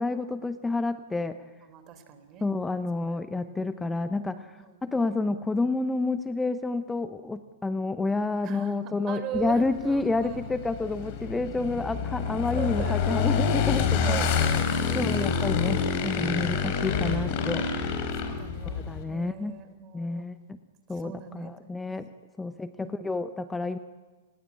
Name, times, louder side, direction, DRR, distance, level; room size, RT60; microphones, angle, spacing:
voice 1, 0.0-1.4 2.4-14.3 15.0-17.7 18.9-19.6 19.9-20.6 20.9-22.1 22.4-23.8, left 3 dB, 10° left, 11 dB, 0.9 m, -29 dB
voice 2, 1.7-2.5 3.1-3.5 4.7-5.0 8.4-10.5 12.5-13.5 13.8-15.5 18.2-18.8 19.1-20.2 20.9-21.8 22.4-22.9, right 9 dB, 35° right, 10 dB, 3.9 m, -40 dB
Motorcycle / Engine, 9.3-19.0, left 6 dB, 45° left, 4.5 m, -27 dB
29.5 x 19.5 x 8.7 m, 1.3 s
hypercardioid pair, 115°, 0 cm